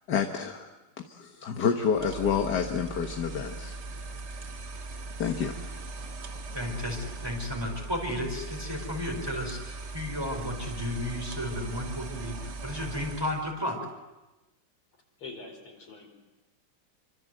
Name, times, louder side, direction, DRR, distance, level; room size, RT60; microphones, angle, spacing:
voice 1, 0.1-0.7 1.1-3.8 5.2-5.6, left 6 dB, 55° left, 4 dB, 1.9 m, -28 dB
sound 1, 1.9-13.5, right 3 dB, 40° right, 1.4 m, -39 dB
voice 2, 6.5-13.8, left 1 dB, 10° right, 1 dB, 5.2 m, -33 dB
voice 3, 15.2-16.1, left 3 dB, 90° left, 2 dB, 5.7 m, -44 dB
27.5 x 25.0 x 7.9 m, 1.1 s
omnidirectional pair, 2.3 m